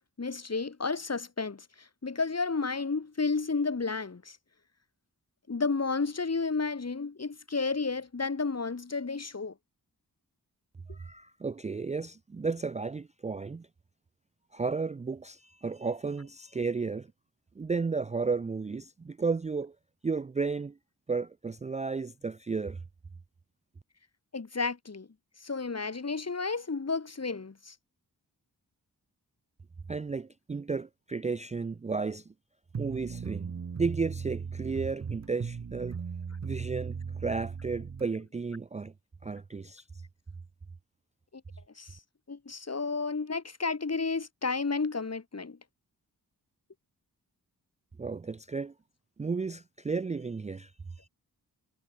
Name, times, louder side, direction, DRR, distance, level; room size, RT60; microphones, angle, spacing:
voice 1, 0.2-4.4 5.5-9.5 24.3-25.1 25.4-27.7 41.8-42.0 42.3-45.6, left 4 dB, 40° left, 2.3 m, -32 dB
voice 2, 10.9-13.7 14.5-17.1 17.6-19.8 20.0-20.8 21.1-22.8 29.9-32.3 32.8-36.0 36.4-38.9 39.2-39.8 48.0-48.7 49.2-50.7 51.0-51.1, right 4 dB, 20° right, 0.4 m, -33 dB
sound 1, 32.7-38.1, right 6 dB, 45° right, 1.1 m, -37 dB
cardioid pair, 50°, 38 cm